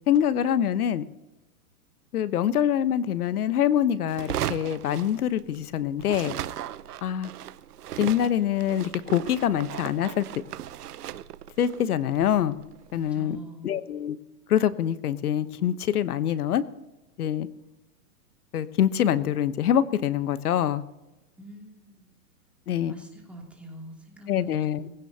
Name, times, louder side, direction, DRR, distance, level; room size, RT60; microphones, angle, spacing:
voice 1, 0.1-1.1 2.1-6.3 7.0-7.3 8.0-10.2 11.6-12.6 12.9-13.4 13.6-14.2 14.5-16.6 17.2-17.5 18.5-20.8 22.7-22.9 24.3-24.9, left 10 dB, 70° left, 14 dB, 1.2 m, -25 dB
sound 1, 4.1-5.7 6.0-13.2, right 11 dB, 80° right, 0.9 m, -37 dB
voice 2, 12.9-13.8 21.3-22.1 22.8-24.9, right 2 dB, 5° right, -2 dB, 2.9 m, -44 dB
19.0 x 16.5 x 2.9 m, 1.0 s
hypercardioid pair, 155°, 46 cm